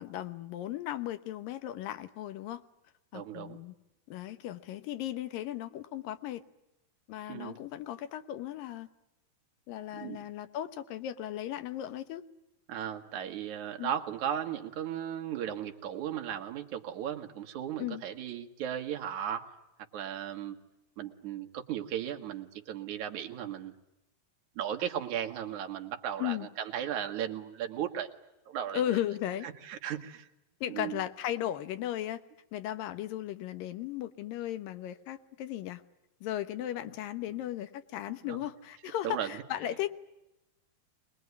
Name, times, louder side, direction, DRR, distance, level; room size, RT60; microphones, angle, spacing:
voice 1, 0.0-2.6 3.1-3.7 4.1-6.4 7.1-8.9 9.7-12.3 13.8-13.9 17.8-18.0 26.2-26.5 28.7-29.5 30.6-32.2 32.5-35.8 36.2-39.9, left 12 dB, 75° left, 11 dB, 2.6 m, -36 dB
voice 2, 3.1-3.6 7.3-7.6 9.9-10.2 12.7-19.5 19.9-20.6 21.0-23.7 24.6-28.1 28.5-29.0 29.4-30.3 30.7-31.0 38.3-38.4 39.0-39.3, right 10 dB, 60° right, 3 dB, 2.8 m, -36 dB
24.5 x 20.5 x 9.5 m, 0.93 s
omnidirectional pair, 4.3 m